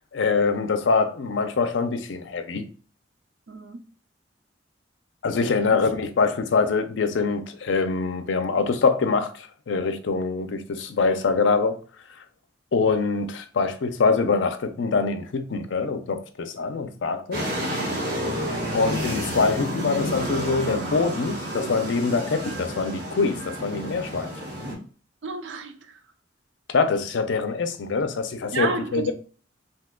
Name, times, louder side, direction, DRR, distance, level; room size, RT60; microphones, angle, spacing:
voice 1, 0.1-2.6 5.2-11.8 12.7-17.4 18.7-24.3 26.7-29.1, left 4 dB, 75° left, 0.5 m, -24 dB
voice 2, 3.5-3.8 5.7-5.9 25.2-26.0 28.5-29.1, right 3 dB, 75° right, 0.5 m, -31 dB
sound 1, 17.3-24.7, equal, 50° right, 1.2 m, -30 dB
2.7 x 2.2 x 3.5 m
head